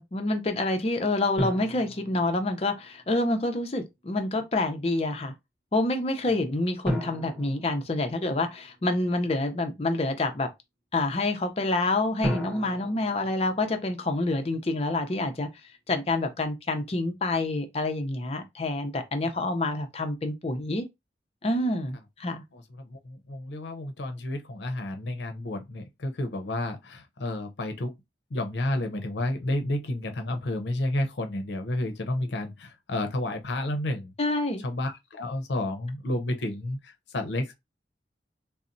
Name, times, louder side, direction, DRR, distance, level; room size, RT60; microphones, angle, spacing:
voice 1, 0.0-5.3 5.7-10.5 10.9-15.5 15.9-20.9 21.4-22.4 34.2-34.6, left 2 dB, 35° left, 0.5 m, -27 dB
sound 1, 1.4-3.0 6.8-8.7 12.2-14.5, equal, 5° left, 0.9 m, -35 dB
voice 2, 22.5-27.9 28.3-34.1 34.6-37.5, left 1 dB, 80° left, 0.6 m, -31 dB
4.0 x 2.0 x 2.5 m
head